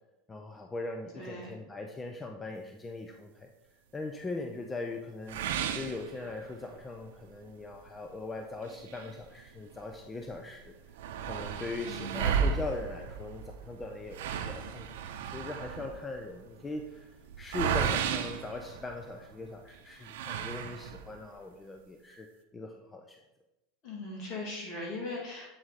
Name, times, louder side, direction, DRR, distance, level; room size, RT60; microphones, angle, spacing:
voice 1, 0.3-3.5 3.9-5.4 5.7-11.0 11.2-14.9 15.3-22.3 22.5-23.2, left 2 dB, 15° left, 3 dB, 0.5 m, -40 dB
voice 2, 1.1-1.5 11.9-12.4 23.8-25.5, left 2 dB, 50° left, -3 dB, 2.4 m, -39 dB
sound 1, 5.3-6.7 7.2-7.3 7.7-7.8 8.6-10.0 10.3-10.4 10.6-19.3 20.0-21.2, right 7 dB, 85° right, 0.6 m, -34 dB
7.7 x 4.6 x 4.1 m, 0.96 s
supercardioid pair, 135°, 0 cm